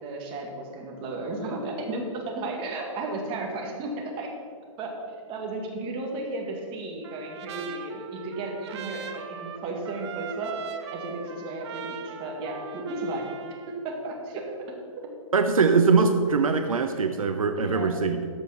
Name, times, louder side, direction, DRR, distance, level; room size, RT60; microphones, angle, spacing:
voice 1, 0.0-4.3 4.8-5.0 5.3-10.5 10.9-13.2 13.7-14.8 17.6-18.2, right 2 dB, 30° right, 0 dB, 1.9 m, -34 dB
Trumpet, 7.0-13.8, right 7 dB, 55° right, 1.0 m, -40 dB
voice 2, 15.3-18.3, right 4 dB, 90° right, 7 dB, 0.7 m, -22 dB
13.0 x 5.1 x 5.6 m, 2.2 s
hypercardioid pair, 130°, 17 cm